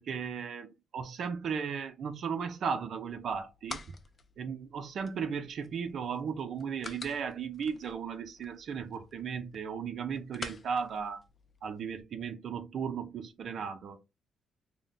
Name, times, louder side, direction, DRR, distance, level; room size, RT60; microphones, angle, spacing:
voice 1, 0.0-3.8 4.4-11.2 11.6-14.0, right 6 dB, 60° right, 0.5 m, -36 dB
sound 1, 3.1-12.0, left 4 dB, 40° left, 0.5 m, -49 dB
3.2 x 2.2 x 3.8 m
cardioid pair, 90°, 0 cm